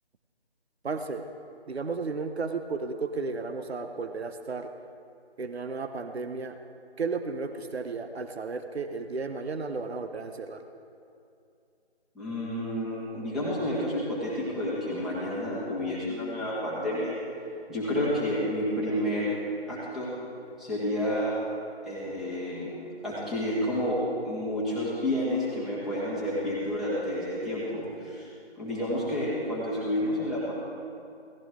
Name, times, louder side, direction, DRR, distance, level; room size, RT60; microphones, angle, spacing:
voice 1, 0.8-1.3 1.7-4.7 5.4-6.6 7.0-10.6, right 4 dB, 70° right, 7 dB, 1.0 m, -33 dB
voice 2, 12.1-17.2 17.7-19.3 19.7-20.1 20.6-21.3 21.8-22.7 23.0-24.0 24.2-28.3 28.6-30.5, left 1 dB, ahead, -10 dB, 1.5 m, -30 dB
17.5 x 14.5 x 3.7 m, 2.5 s
figure-of-eight pair, 160°, 33 cm